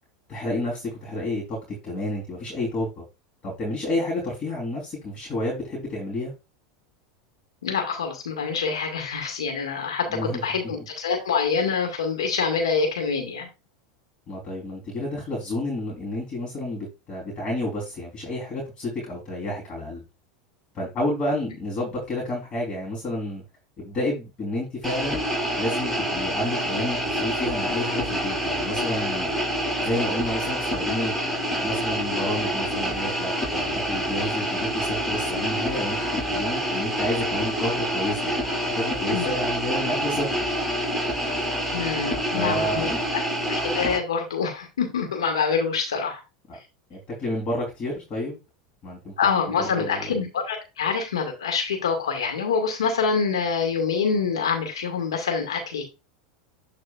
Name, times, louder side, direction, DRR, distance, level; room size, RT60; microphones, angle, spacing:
voice 1, 0.3-1.6 1.8-3.0 3.4-6.3 10.1-10.4 14.3-20.0 20.7-23.4 23.8-25.2 25.6-29.3 29.8-31.2 31.5-36.0 36.3-38.3 38.8-40.5 42.3-43.0 46.5-46.6 46.9-48.4 48.8-49.1 49.8-50.1, left 1 dB, 35° left, 3.8 m, -30 dB
voice 2, 7.6-13.5 39.1-39.3 41.7-42.9 43.7-46.2 49.2-55.8, left 5 dB, 80° left, 2.1 m, -26 dB
sound 1, 24.8-44.0, equal, 5° left, 4.6 m, -27 dB
11.5 x 4.7 x 2.5 m
hypercardioid pair, 90°, 3 cm